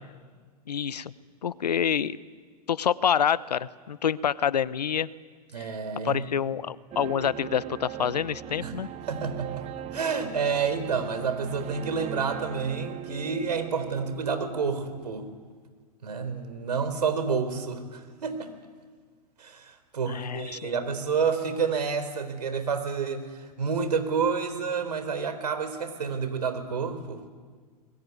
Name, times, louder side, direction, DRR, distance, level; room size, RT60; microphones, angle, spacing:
voice 1, 0.7-1.1 1.4-2.2 2.7-5.1 5.6-5.7 6.0-8.9 20.1-20.8, left 8 dB, 85° left, 17 dB, 0.9 m, -27 dB
voice 2, 5.5-6.2 8.6-8.7 9.1-15.3 16.0-18.5 19.4-27.2, right 5 dB, 85° right, 9 dB, 4.0 m, -29 dB
sound 1, 6.9-15.1, right 11 dB, 35° right, 1.2 m, -40 dB
25.5 x 21.5 x 9.6 m, 1.6 s
hypercardioid pair, 110°, 20 cm